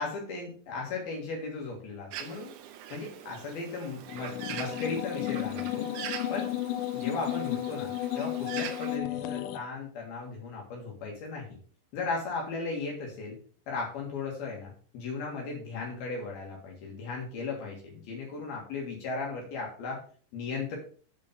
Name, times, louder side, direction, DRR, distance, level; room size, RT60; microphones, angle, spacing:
voice 1, 0.0-2.5 2.9-5.9 6.3-6.5 6.9-11.5 11.9-13.4 13.7-20.0 20.3-20.8, left 4 dB, 65° left, -1 dB, 3.6 m, -36 dB
Bird, 2.1-9.0, right 9 dB, 85° right, 3.1 m, -43 dB
sound 1, 4.1-9.6, left 13 dB, 80° left, 2.7 m, -33 dB
8.5 x 5.1 x 5.3 m, 0.43 s
omnidirectional pair, 5.1 m